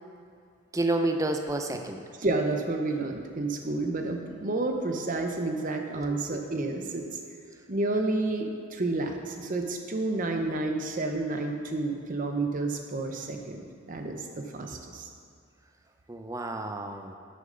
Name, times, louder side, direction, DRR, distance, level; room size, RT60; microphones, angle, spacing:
voice 1, 0.7-2.0 6.0-6.4 16.1-17.2, right 2 dB, 15° right, 5 dB, 0.5 m, -30 dB
voice 2, 2.2-7.1 7.7-13.6 13.9-15.1, right 2 dB, 40° right, 4 dB, 0.8 m, -30 dB
10.5 x 6.8 x 3.9 m, 2.3 s
head